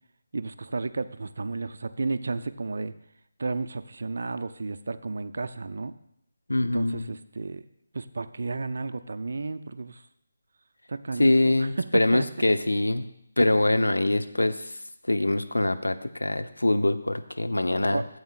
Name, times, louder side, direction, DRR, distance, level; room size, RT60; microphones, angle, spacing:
voice 1, 0.3-2.9 3.4-5.9 6.6-7.6 7.9-10.0 10.9-12.2 17.9-18.1, right 3 dB, 60° right, 11 dB, 0.4 m, -32 dB
voice 2, 6.5-7.1 11.2-13.1 13.4-14.8 15.0-18.0, left 1 dB, 80° left, 9 dB, 0.7 m, -24 dB
14.0 x 8.0 x 2.4 m, 0.73 s
figure-of-eight pair, 150°, 0 cm